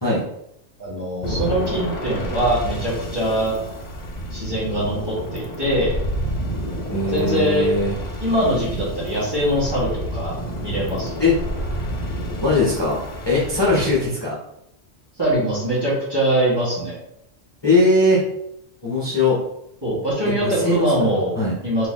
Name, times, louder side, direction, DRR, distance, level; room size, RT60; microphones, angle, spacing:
voice 1, 0.8-3.6 4.3-6.0 7.1-7.7 8.2-11.1 15.2-17.0 19.8-21.3 21.6-21.9, right 1 dB, 20° right, -9 dB, 1.8 m, -22 dB
sound 1, 1.2-14.1, equal, 45° left, 0.8 m, -29 dB
voice 2, 6.9-8.0 11.2-11.3 12.4-13.0 13.2-14.4 17.6-18.2 18.8-19.4 20.4-20.9 21.4-21.5, left 2 dB, 25° left, -8 dB, 1.1 m, -19 dB
4.2 x 2.9 x 3.7 m, 0.78 s
omnidirectional pair, 1.2 m